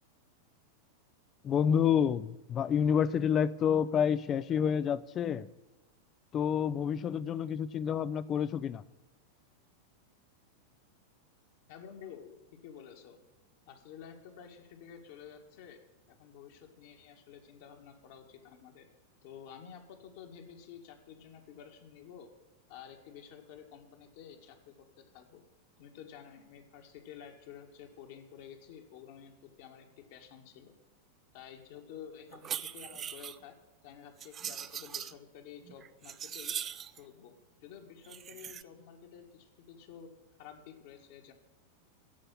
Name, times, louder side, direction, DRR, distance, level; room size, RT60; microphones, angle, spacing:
voice 1, 1.4-5.5 6.3-8.8, left 8 dB, 30° left, 17 dB, 0.5 m, -28 dB
voice 2, 11.7-12.3 12.6-13.2 13.7-15.8 16.1-18.9 19.2-22.3 22.7-25.4 25.8-30.7 31.3-33.6 33.8-36.6 37.0-37.3 37.6-40.1 40.4-41.3, left 8 dB, 50° left, 3 dB, 1.8 m, -51 dB
sound 1, 32.3-33.4 34.2-35.1 35.7-37.0 38.0-38.6, right 9 dB, 25° right, 0.5 m, -40 dB
16.0 x 5.6 x 9.2 m, 1.1 s
figure-of-eight pair, 90°, 0 cm